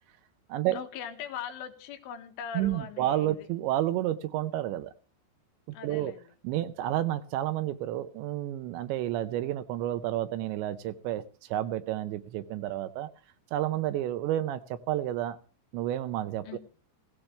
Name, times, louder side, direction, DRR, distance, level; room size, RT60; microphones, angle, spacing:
voice 1, 0.7-3.3 5.7-6.3 16.4-16.6, left 7 dB, 85° left, 6 dB, 3.9 m, -40 dB
voice 2, 2.5-4.9 5.7-6.1 6.4-13.1 13.5-15.4 15.7-16.6, right 13 dB, 80° right, 11 dB, 2.9 m, -30 dB
17.0 x 16.0 x 3.3 m, 0.38 s
omnidirectional pair, 5.5 m